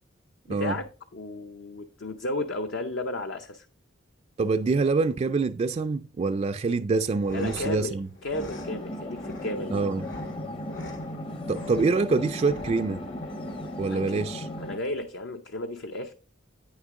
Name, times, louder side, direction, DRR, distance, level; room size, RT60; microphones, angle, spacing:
voice 1, 0.5-3.7 7.3-9.9 13.9-14.3 14.6-16.1, left 2 dB, 70° left, 0.6 m, -34 dB
voice 2, 4.4-8.1 9.7-10.0 11.5-13.0 13.8-14.5, right 4 dB, 35° right, 0.3 m, -25 dB
sound 1, 7.0-15.0, left 2 dB, 85° left, 2.0 m, -45 dB
sound 2, 8.3-14.8, left 1 dB, 30° left, 0.7 m, -36 dB
9.0 x 6.3 x 3.7 m
head